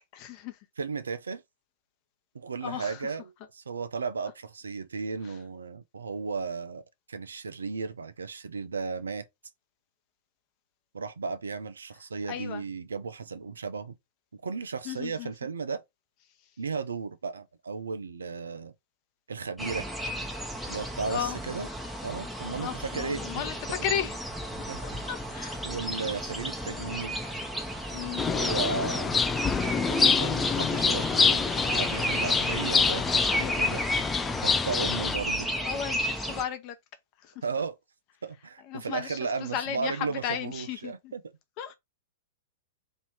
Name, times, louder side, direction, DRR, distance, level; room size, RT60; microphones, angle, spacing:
voice 1, 0.1-0.6 2.6-3.0 12.3-12.6 14.8-15.3 21.1-21.4 22.6-24.2 24.8-25.6 27.9-28.2 33.3-33.6 35.5-36.7 37.2-37.4 38.7-41.1 41.6-41.7, left 9 dB, 40° left, 1.0 m, -34 dB
voice 2, 0.8-1.4 2.3-6.8 7.1-9.3 10.9-13.9 14.3-15.8 16.6-18.7 19.3-19.9 20.7-21.7 22.0-23.5 24.7-25.0 25.6-27.3 28.1-29.2 29.9-33.8 34.4-35.5 37.4-37.8 38.2-41.2, right 5 dB, 75° right, 0.6 m, -35 dB
sound 1, 19.6-36.4, equal, ahead, 1.0 m, -34 dB
sound 2, 28.2-35.2, left 5 dB, 15° left, 0.4 m, -26 dB
3.1 x 2.8 x 4.5 m
figure-of-eight pair, 105°, 0 cm